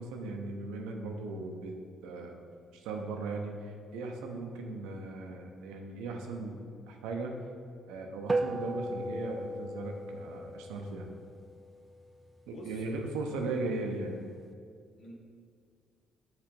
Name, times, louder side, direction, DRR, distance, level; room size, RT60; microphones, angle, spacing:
voice 1, 0.0-1.8 2.0-2.4 2.7-6.6 6.9-7.4 7.9-11.1 12.5-14.2, right 3 dB, 80° right, 3 dB, 0.6 m, -37 dB
sound 1, 8.3-12.9, right 2 dB, 30° right, 0.3 m, -37 dB
voice 2, 12.5-12.9 15.0-15.1, left 1 dB, 70° left, -2 dB, 1.1 m, -47 dB
5.9 x 3.3 x 5.2 m, 2.2 s
hypercardioid pair, 50°, 0 cm